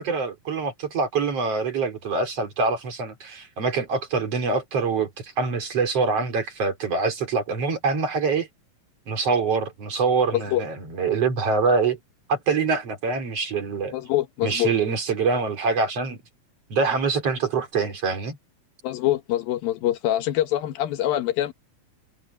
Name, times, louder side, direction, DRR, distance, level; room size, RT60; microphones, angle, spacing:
voice 1, 0.0-8.5 9.1-12.0 12.3-13.9 14.4-16.2 16.7-18.4, right 4 dB, 40° right, 4.7 m, -25 dB
voice 2, 13.9-14.7 18.8-21.5, left 13 dB, 80° left, 3.1 m, -24 dB
omnidirectional pair, 4.2 m